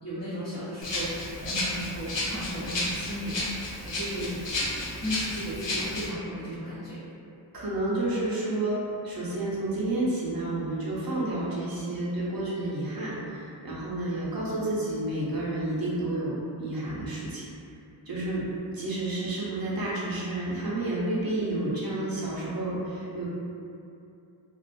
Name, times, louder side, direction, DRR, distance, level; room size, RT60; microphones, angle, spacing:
voice 1, 0.0-3.5 3.9-4.3 5.0-7.0, equal, 35° left, -13 dB, 0.7 m, -35 dB
Rattle (instrument), 0.8-6.1, left 1 dB, 70° left, 0.6 m, -32 dB
voice 2, 7.5-8.8 9.0-17.5 18.1-18.4 18.7-23.3, right 2 dB, 50° right, -7 dB, 0.7 m, -30 dB
2.3 x 2.1 x 2.4 m, 2.6 s
wide cardioid pair, 60°, 46 cm